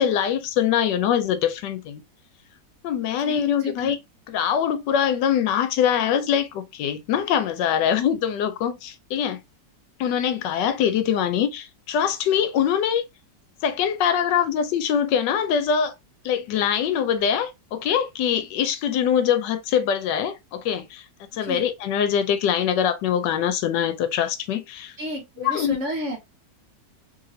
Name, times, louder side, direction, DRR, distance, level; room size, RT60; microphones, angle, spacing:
voice 1, 0.0-2.0 2.8-4.0 4.3-9.4 10.0-13.0 13.6-15.9 16.2-21.0 21.3-24.9 25.4-25.8, left 8 dB, 80° left, 1.2 m, -23 dB
voice 2, 3.2-3.9 21.4-21.6 25.0-26.2, equal, 50° right, 1.1 m, -32 dB
3.0 x 2.8 x 2.7 m
omnidirectional pair, 1.9 m